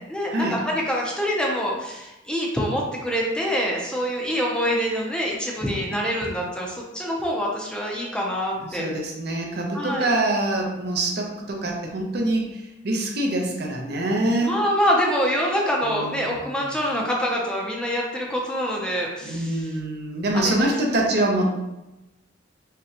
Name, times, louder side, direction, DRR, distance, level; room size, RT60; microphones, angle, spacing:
voice 1, 0.1-8.9 9.7-10.1 14.4-19.7 20.3-20.7, equal, 5° left, -2 dB, 0.6 m, -25 dB
voice 2, 8.6-14.5 15.8-16.8 19.2-21.5, right 1 dB, 60° right, 0 dB, 0.7 m, -25 dB
5.0 x 2.2 x 2.8 m, 0.96 s
head